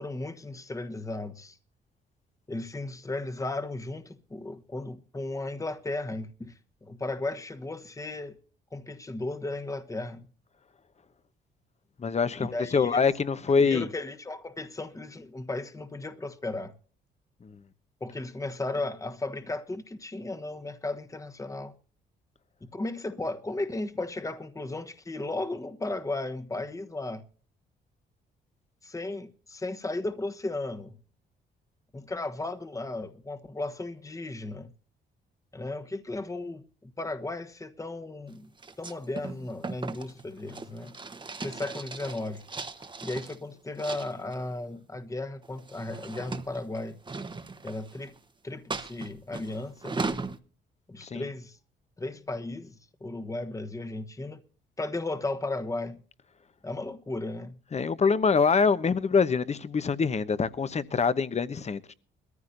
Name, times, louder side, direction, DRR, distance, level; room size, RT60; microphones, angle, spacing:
voice 1, 0.0-1.6 2.5-8.4 8.7-10.3 12.4-13.1 13.5-16.7 18.0-21.7 22.7-27.2 28.8-31.0 31.9-34.7 35.5-38.5 38.8-40.9 41.4-42.4 43.0-47.0 47.6-48.1 48.4-50.2 50.9-51.6 52.0-54.4 54.8-56.0 56.6-57.6, left 2 dB, 15° left, 1.2 m, -35 dB
voice 2, 12.0-13.9 17.4-17.5 51.1-51.2 57.7-61.9, left 5 dB, 35° left, 1.0 m, -25 dB
sound 1, 38.6-43.4 43.8-44.4 45.4-48.2 48.7-50.4, right 3 dB, 25° right, 1.1 m, -38 dB
21.5 x 14.5 x 2.6 m
cardioid pair, 80°, 19 cm